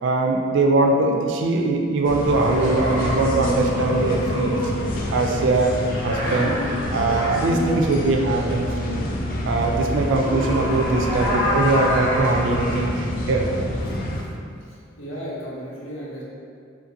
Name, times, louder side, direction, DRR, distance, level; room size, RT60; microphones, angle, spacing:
voice 1, 0.0-4.6 5.1-5.8 6.0-9.0 9.4-13.5, right 3 dB, 65° right, 2 dB, 0.3 m, -21 dB
sound 1, 2.0-14.2, left 1 dB, 45° left, 0.3 m, -27 dB
sound 2, 2.4-4.8 5.8-7.4 9.9-12.9, left 1 dB, 15° left, 0.8 m, -27 dB
voice 2, 14.6-16.2, equal, 90° left, -6 dB, 0.8 m, -35 dB
2.8 x 2.5 x 2.6 m, 2.3 s
head